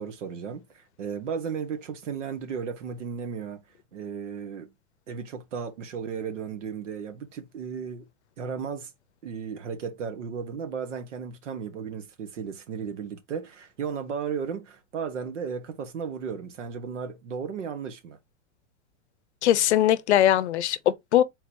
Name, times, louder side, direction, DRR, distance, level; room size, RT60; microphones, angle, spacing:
voice 1, 0.0-3.6 3.9-4.7 5.1-8.1 8.4-8.9 9.2-18.2, right 6 dB, 80° right, 1.3 m, -35 dB
voice 2, 19.4-21.2, left 12 dB, 65° left, 0.6 m, -21 dB
4.0 x 2.7 x 4.4 m
supercardioid pair, 175°, 36 cm